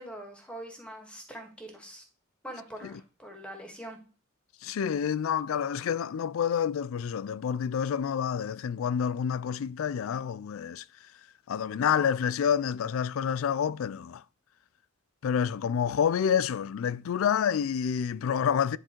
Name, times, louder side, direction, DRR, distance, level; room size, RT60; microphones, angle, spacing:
voice 1, 0.0-2.0 2.4-4.0, right 1 dB, 5° left, 1.6 m, -43 dB
voice 2, 4.6-10.8 11.5-14.2 15.2-18.8, left 8 dB, 70° left, 0.3 m, -28 dB
9.9 x 3.8 x 4.4 m
head